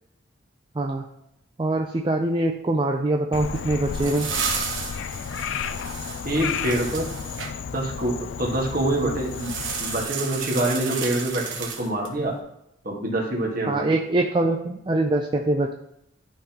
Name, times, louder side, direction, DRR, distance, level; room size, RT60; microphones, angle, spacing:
voice 1, 1.6-4.3 13.7-15.7, right 2 dB, 25° right, 2 dB, 0.4 m, -23 dB
Frog, 3.3-10.0, left 7 dB, 65° left, 0.3 m, -32 dB
sound 1, 3.5-7.5 9.3-12.2, right 6 dB, 70° right, 1.2 m, -32 dB
voice 2, 6.2-7.1 7.7-9.5 9.8-12.3 12.8-13.9, right 1 dB, 45° right, -2 dB, 1.6 m, -26 dB
11.5 x 3.9 x 2.9 m, 0.81 s
head